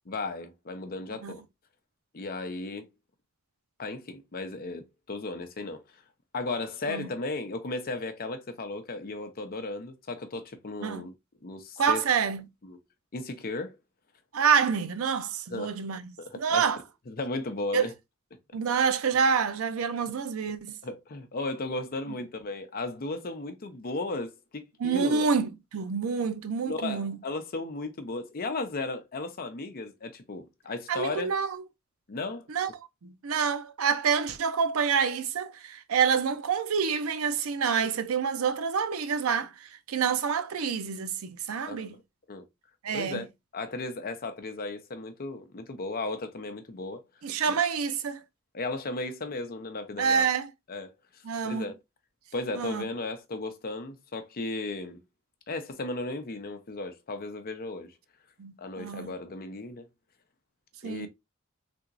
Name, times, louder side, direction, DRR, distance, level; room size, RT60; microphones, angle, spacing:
voice 1, 0.1-1.4 2.1-2.9 3.8-5.8 6.3-11.1 11.4-12.0 12.6-12.8 13.1-13.8 15.5-15.8 16.3-16.7 17.1-17.9 20.8-25.3 26.6-31.3 32.1-32.5 41.6-42.0 42.3-42.4 42.9-43.3 43.5-47.0 47.5-47.6 48.5-50.3 50.7-50.9 51.4-51.7 52.3-55.0 55.5-57.9 58.6-59.8 60.8-61.1, left 2 dB, 45° left, 0.6 m, -35 dB
voice 2, 11.8-12.5 14.3-16.8 17.7-17.9 18.5-20.8 22.1-22.2 24.8-27.2 30.9-31.6 32.5-32.7 33.0-42.0 42.8-43.2 47.2-48.2 50.0-50.5 51.2-51.7 52.6-52.9 58.4-59.1 60.8-61.1, right 6 dB, 85° right, 0.5 m, -27 dB
3.4 x 2.9 x 2.5 m
head